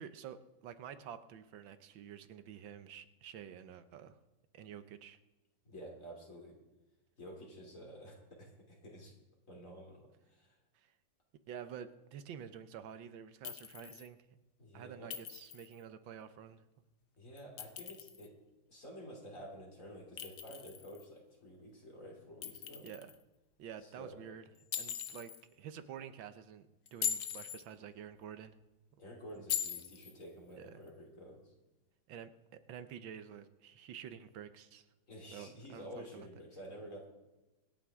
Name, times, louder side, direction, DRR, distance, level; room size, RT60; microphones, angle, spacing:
voice 1, 0.0-4.2 4.5-5.2 10.7-10.9 11.5-14.2 14.7-16.6 22.8-23.1 23.6-24.4 24.8-28.5 30.6-30.8 32.1-34.9 35.3-36.3, right 8 dB, 85° right, 11 dB, 1.6 m, -49 dB
voice 2, 5.6-6.6 7.2-9.1 9.5-10.6 14.6-15.1 17.2-18.3 18.7-22.9 23.8-24.3 29.0-31.5 35.1-37.1, equal, 40° left, 0 dB, 3.4 m, -50 dB
Chink clink, 13.4-14.1 15.1-15.7 17.4-18.3 20.2-21.0 22.4-23.2 24.7-25.4 26.9-27.6 29.5-30.1, left 9 dB, 65° left, 1.3 m, -40 dB
25.5 x 9.0 x 3.6 m, 1.1 s
omnidirectional pair, 2.1 m